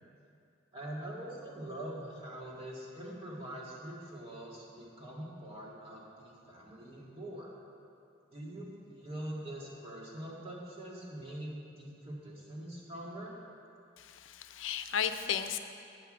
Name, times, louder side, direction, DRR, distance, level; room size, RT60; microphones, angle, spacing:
voice 1, 0.7-7.5 8.3-13.4, right 1 dB, 30° right, -5 dB, 2.0 m, -44 dB
voice 2, 14.0-15.6, left 8 dB, 80° left, 9 dB, 0.5 m, -34 dB
9.2 x 5.6 x 7.6 m, 2.5 s
head